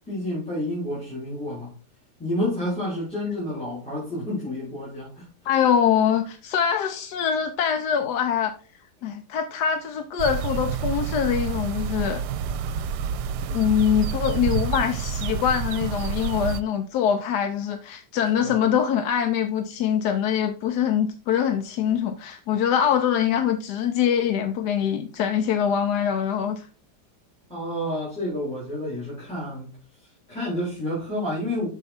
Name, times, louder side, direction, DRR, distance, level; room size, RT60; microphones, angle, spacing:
voice 1, 0.1-1.8 2.2-5.3 18.4-18.5 27.5-29.8 30.3-31.7, left 1 dB, 5° left, 3.6 m, -29 dB
voice 2, 5.5-8.5 9.0-12.2 13.5-26.7, left 8 dB, 75° left, 1.2 m, -24 dB
sound 1, 10.2-16.6, right 7 dB, 85° right, 1.2 m, -28 dB
6.5 x 5.7 x 4.3 m
omnidirectional pair, 1.8 m